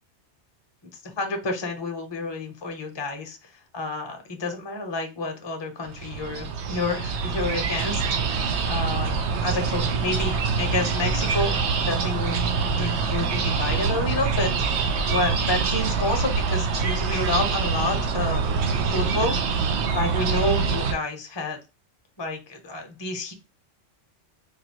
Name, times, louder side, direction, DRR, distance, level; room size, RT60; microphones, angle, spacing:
voice 1, 0.8-11.5 11.8-12.4 12.7-14.7 15.1-18.6 18.9-19.4 19.9-21.6 22.2-23.3, left 2 dB, 25° left, 4 dB, 0.7 m, -29 dB
sound 1, 5.8-20.9, right 5 dB, 75° right, 0.9 m, -25 dB
4.0 x 2.5 x 2.8 m, 0.29 s
omnidirectional pair, 1.2 m